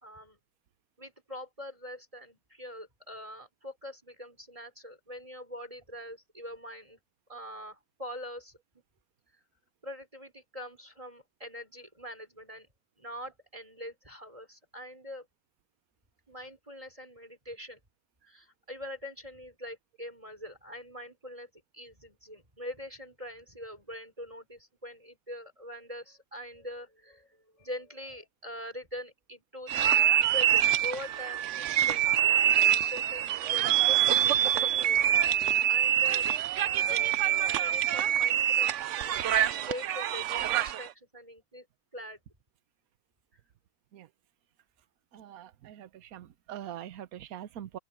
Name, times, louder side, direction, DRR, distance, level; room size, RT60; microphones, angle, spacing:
voice 1, 0.0-0.4 1.0-7.0 7.3-8.6 9.8-12.7 13.0-15.3 16.3-17.8 18.2-27.3 27.6-30.0 30.3-32.1 32.6-35.1 35.7-36.3 36.8-41.7 41.9-42.2, left 1 dB, 15° right, 5.4 m, -43 dB
sound 1, 29.7-40.9, right 10 dB, 80° right, 0.6 m, -25 dB
voice 2, 45.1-47.8, right 11 dB, 60° right, 1.2 m, -43 dB
open air
omnidirectional pair, 2.0 m